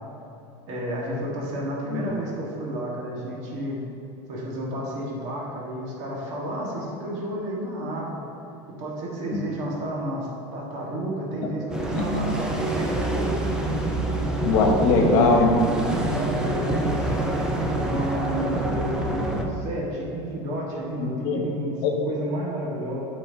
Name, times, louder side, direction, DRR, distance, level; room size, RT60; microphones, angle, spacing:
voice 1, 0.7-3.8 4.3-8.2 8.8-13.7 15.9-23.0, right 1 dB, 50° right, -4 dB, 1.6 m, -31 dB
sound 1, 11.7-19.4, right 1 dB, 5° right, 0.5 m, -26 dB
voice 2, 11.9-12.2 14.4-15.5 21.0-21.4 21.8-21.9, left 3 dB, 55° left, 1 dB, 1.2 m, -20 dB
11.0 x 5.6 x 2.8 m, 2.7 s
supercardioid pair, 165°, 15 cm